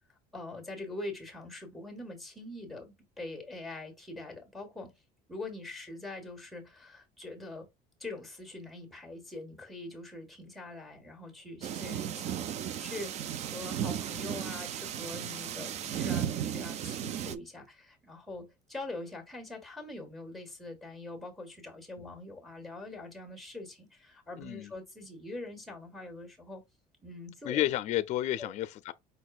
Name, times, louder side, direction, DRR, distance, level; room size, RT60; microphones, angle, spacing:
voice 1, 0.3-4.9 5.3-7.7 8.0-12.4 12.8-26.6 27.0-27.6 28.4-28.5, left 2 dB, ahead, 1.5 m, -43 dB
sound 1, 11.6-17.4, right 9 dB, 45° right, 0.4 m, -35 dB
voice 2, 24.4-24.7 27.4-28.9, left 13 dB, 50° left, 0.5 m, -31 dB
5.1 x 4.1 x 2.4 m
cardioid pair, 155°, 16 cm